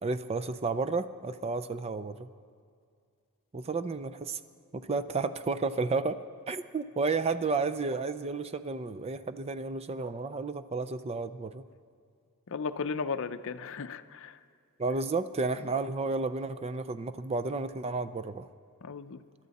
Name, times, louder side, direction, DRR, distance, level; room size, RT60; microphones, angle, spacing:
voice 1, 0.0-2.3 3.5-4.4 4.7-6.2 6.5-11.6 14.8-18.5, right 3 dB, 25° right, 12 dB, 0.4 m, -32 dB
voice 2, 12.5-14.4 18.8-19.2, left 5 dB, 60° left, 11 dB, 0.5 m, -35 dB
26.0 x 12.0 x 4.1 m, 2.3 s
head